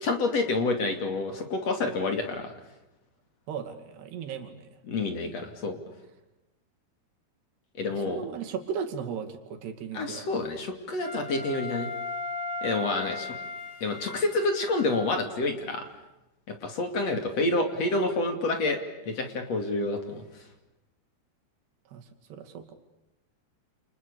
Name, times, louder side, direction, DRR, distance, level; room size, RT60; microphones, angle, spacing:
voice 1, 0.0-2.5 4.9-5.8 7.8-8.2 9.9-11.9 12.6-13.3 13.8-15.9 16.5-20.2, left 2 dB, 45° left, 6 dB, 3.4 m, -28 dB
voice 2, 3.5-4.7 7.9-10.3 21.9-22.7, right 7 dB, 85° right, 4 dB, 4.5 m, -36 dB
Wind instrument woodwind instrument, 11.0-15.3, left 3 dB, 85° left, 8.5 m, -37 dB
29.5 x 28.5 x 6.9 m, 0.98 s
omnidirectional pair, 4.6 m